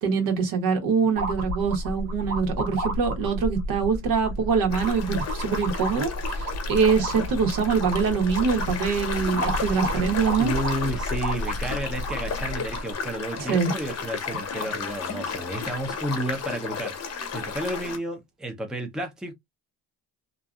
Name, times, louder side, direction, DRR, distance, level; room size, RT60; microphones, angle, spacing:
voice 1, 0.0-6.4 6.7-10.5 13.4-13.7, right 5 dB, 65° right, 1.3 m, -24 dB
sound 1, 1.2-12.9, equal, 90° right, 1.1 m, -31 dB
sound 2, 4.7-18.0, left 6 dB, 45° left, 0.9 m, -33 dB
voice 2, 10.4-19.3, right 1 dB, ahead, 0.6 m, -32 dB
2.5 x 2.5 x 2.3 m
supercardioid pair, 90°, 37 cm